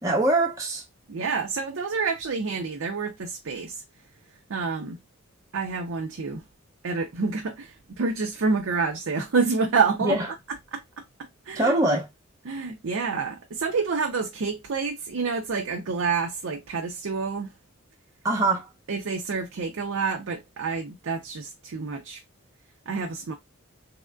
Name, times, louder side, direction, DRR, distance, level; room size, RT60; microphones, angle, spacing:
voice 1, 0.0-0.8 10.0-10.3 11.5-12.1 18.2-18.7, right 2 dB, 15° right, 0.7 m, -23 dB
voice 2, 1.1-3.8 4.5-5.0 5.5-6.4 6.8-10.2 10.7-10.8 11.5-11.9 12.5-17.5 18.9-22.2 22.9-23.3, right 4 dB, 70° right, 0.5 m, -28 dB
3.4 x 2.5 x 2.2 m
head